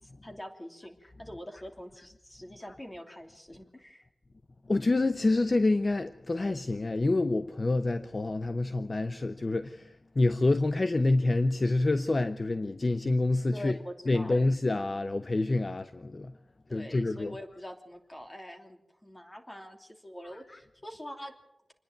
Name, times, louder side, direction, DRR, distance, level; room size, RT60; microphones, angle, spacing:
voice 1, 0.0-4.1 13.5-14.4 16.7-21.3, equal, 20° left, 2.9 m, -45 dB
voice 2, 4.7-13.8 14.1-16.3 16.7-17.4 20.2-20.6, left 2 dB, 40° left, 0.7 m, -27 dB
27.0 x 10.0 x 9.4 m
wide cardioid pair, 80°, 0 cm